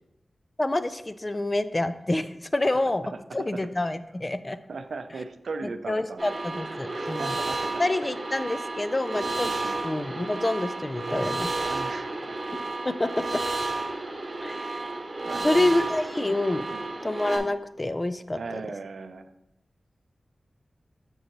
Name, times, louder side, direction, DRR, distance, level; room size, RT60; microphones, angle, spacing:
voice 1, 0.6-4.6 5.9-7.3 7.8-9.5 9.8-11.5 12.8-13.4 14.4-14.7 15.4-16.7 17.0-18.4, left 2 dB, 25° left, 12 dB, 0.3 m, -27 dB
voice 2, 3.3-3.7 4.7-6.3 6.6-7.8 9.4-9.8 11.7-12.4 15.2-15.8 16.7-16.8 18.3-19.3, right 4 dB, 85° right, 9 dB, 0.4 m, -38 dB
sound 1, 6.2-17.4, right 2 dB, 45° right, 1.1 m, -32 dB
6.4 x 5.4 x 3.0 m, 0.86 s
wide cardioid pair, 90°, 0 cm